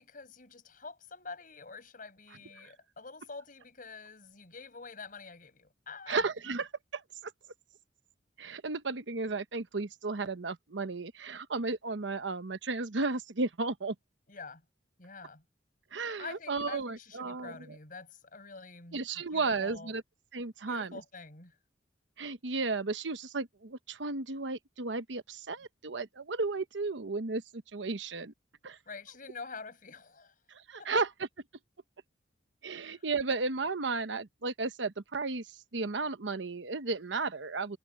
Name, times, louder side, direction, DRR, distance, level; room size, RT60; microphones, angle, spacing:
voice 1, 0.0-6.2 14.3-14.6 15.0-15.4 16.2-19.0 19.3-19.9 20.6-21.6 28.9-30.3 30.8-30.9 32.8-33.0, left 4 dB, 50° left, 5.4 m, -47 dB
voice 2, 6.1-7.3 8.4-13.9 15.9-17.8 18.9-20.0 20.3-21.0 22.2-28.3 28.6-28.8 30.5-31.1 32.6-37.8, right 3 dB, 85° right, 1.0 m, -34 dB
head